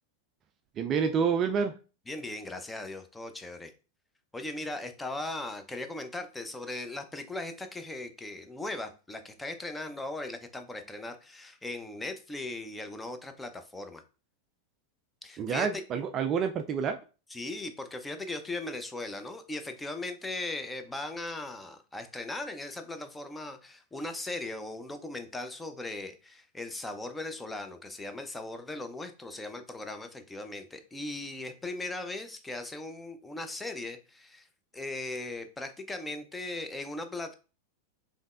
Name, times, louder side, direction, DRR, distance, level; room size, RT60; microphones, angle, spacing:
voice 1, 0.8-1.7 15.4-17.0, right 6 dB, 30° right, 7 dB, 0.4 m, -28 dB
voice 2, 2.1-3.7 4.3-14.0 15.2-15.7 17.3-34.5 34.7-37.3, left 2 dB, 10° left, 7 dB, 0.6 m, -38 dB
5.3 x 3.1 x 2.4 m, 0.34 s
figure-of-eight pair, 90°, 0 cm